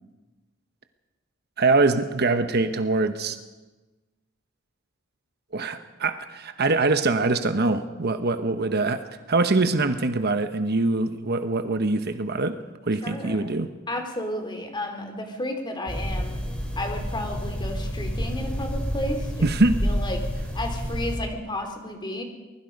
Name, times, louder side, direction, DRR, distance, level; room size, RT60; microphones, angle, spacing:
voice 1, 1.6-3.4 5.5-13.7 19.4-19.8, right 3 dB, 50° right, 9 dB, 1.1 m, -23 dB
voice 2, 13.0-13.5 13.9-16.4 16.8-19.5 19.8-20.2 20.5-22.2, left 1 dB, 20° left, 4 dB, 3.2 m, -32 dB
sound 1, 15.9-21.2, equal, 5° left, 4.5 m, -29 dB
24.5 x 20.5 x 5.4 m, 1.2 s
head